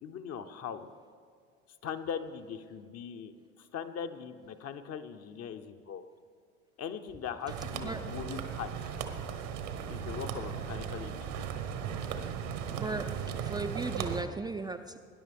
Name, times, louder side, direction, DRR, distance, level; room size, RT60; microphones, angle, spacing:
voice 1, 0.0-0.9 1.8-6.0 6.8-8.9 9.9-11.5, left 7 dB, 40° left, 8 dB, 0.9 m, -40 dB
sound 1, 7.5-14.2, right 7 dB, 65° right, 1.2 m, -37 dB
voice 2, 12.7-15.0, right 3 dB, 10° right, 5 dB, 0.4 m, -37 dB
19.5 x 10.5 x 3.5 m, 2.3 s
figure-of-eight pair, 65°, 38 cm